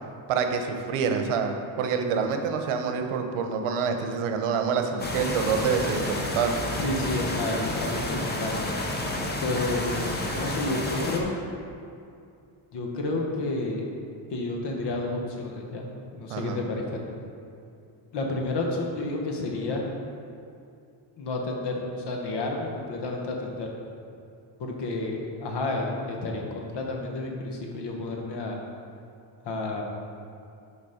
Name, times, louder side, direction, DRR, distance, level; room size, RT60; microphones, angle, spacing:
voice 1, 0.3-6.6 16.3-16.6, right 6 dB, 80° right, 5 dB, 0.9 m, -27 dB
sound 1, 5.0-11.2, left 1 dB, 20° left, 0.7 m, -30 dB
voice 2, 6.7-8.6 9.4-11.3 12.7-13.9 14.3-15.9 16.1-17.2 18.1-19.9 21.2-23.7 24.6-28.6 29.4-29.8, left 2 dB, 55° left, 0 dB, 1.2 m, -30 dB
6.7 x 5.3 x 5.0 m, 2.5 s
cardioid pair, 150°, 49 cm